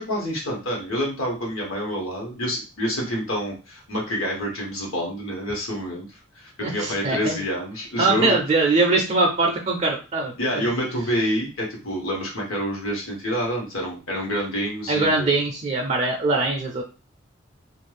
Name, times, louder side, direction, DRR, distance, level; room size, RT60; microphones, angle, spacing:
voice 1, 0.0-6.1 6.4-8.4 10.4-15.4, equal, 80° left, -1 dB, 1.2 m, -27 dB
voice 2, 6.6-7.4 8.0-10.6 14.9-16.8, right 3 dB, 30° right, 1 dB, 0.4 m, -22 dB
2.5 x 2.3 x 3.2 m, 0.33 s
head